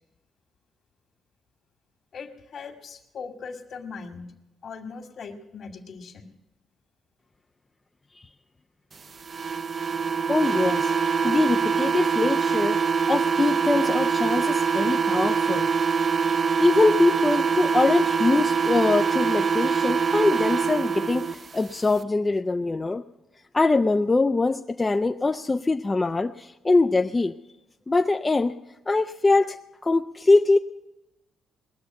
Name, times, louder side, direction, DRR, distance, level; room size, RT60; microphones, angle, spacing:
voice 1, 2.1-4.3 4.6-6.3, left 5 dB, 60° left, 5 dB, 2.0 m, -39 dB
sound 1, 9.3-21.3, right 5 dB, 40° right, 0.6 m, -24 dB
voice 2, 10.3-11.0 11.2-12.8 13.1-15.7 16.3-23.0 23.5-27.3 27.9-28.6 28.9-29.6 29.8-30.6, left 3 dB, 20° left, 6 dB, 0.5 m, -23 dB
20.5 x 6.9 x 9.4 m, 0.98 s
cardioid pair, 90°, 0 cm